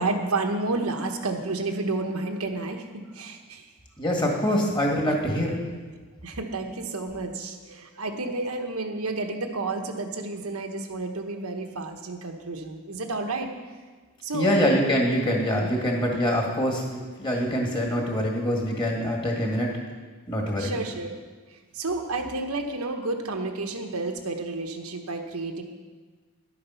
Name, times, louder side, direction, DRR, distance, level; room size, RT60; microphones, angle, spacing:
voice 1, 0.0-3.7 6.2-13.5 14.2-14.6 15.5-15.7 20.6-21.1 21.5-25.6, right 3 dB, 90° right, 4 dB, 1.2 m, -31 dB
voice 2, 4.0-5.6 14.3-19.7 20.3-20.7, equal, 20° left, -1 dB, 1.9 m, -24 dB
11.5 x 8.6 x 5.7 m, 1.4 s
head